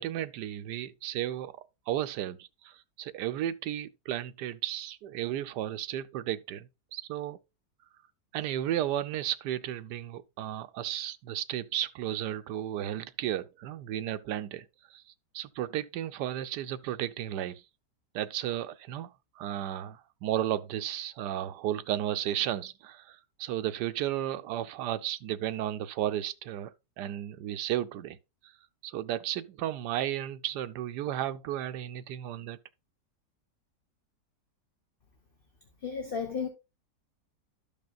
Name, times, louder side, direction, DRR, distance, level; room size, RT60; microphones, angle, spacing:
voice 1, 0.0-1.5 1.9-7.4 8.3-14.6 14.9-15.0 15.3-17.6 18.1-26.7 27.0-28.2 28.8-32.6, right 12 dB, 80° right, 1.2 m, -34 dB
voice 2, 35.8-36.5, left 6 dB, 35° left, 1.1 m, -33 dB
13.0 x 5.3 x 2.4 m
omnidirectional pair, 1.8 m